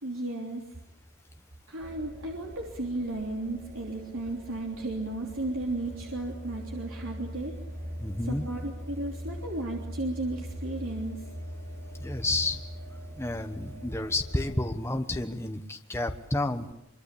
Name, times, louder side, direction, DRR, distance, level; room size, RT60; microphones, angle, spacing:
voice 1, 0.0-0.7 1.7-7.5 8.2-11.2, right 2 dB, 75° right, 0 dB, 3.3 m, -34 dB
sound 1, 1.8-14.7, equal, 50° right, 3.6 m, -41 dB
voice 2, 8.0-8.5 12.0-12.6 13.1-16.7, left 2 dB, 10° left, 6 dB, 1.2 m, -30 dB
25.0 x 24.5 x 8.5 m, 0.82 s
head